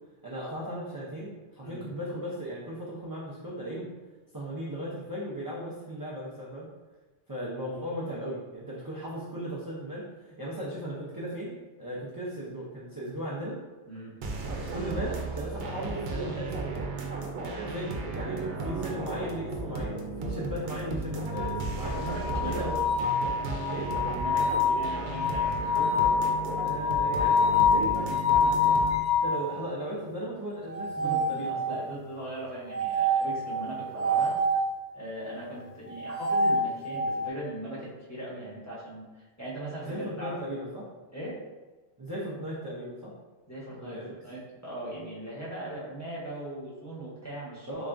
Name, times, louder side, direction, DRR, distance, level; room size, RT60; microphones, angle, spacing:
voice 1, 0.2-3.9 4.3-6.7 7.3-13.6 14.7-16.8 17.4-22.0 22.4-22.8 23.7-23.9 26.6-28.6 29.2-31.7 39.8-40.9 42.0-43.1 43.7-44.1 47.7-47.9, right 1 dB, 25° right, -7 dB, 0.5 m, -37 dB
sound 1, 14.2-29.0, right 3 dB, 85° right, 0.9 m, -34 dB
sound 2, 21.3-29.4 30.7-32.0 32.7-34.7 35.9-37.2, left 3 dB, 60° left, 0.4 m, -26 dB
voice 2, 21.9-22.9 24.1-25.9 31.0-34.4 34.9-40.4 41.1-41.4 43.5-47.7, right 1 dB, 15° left, -8 dB, 0.9 m, -39 dB
4.0 x 3.5 x 2.5 m, 1.2 s
omnidirectional pair, 1.2 m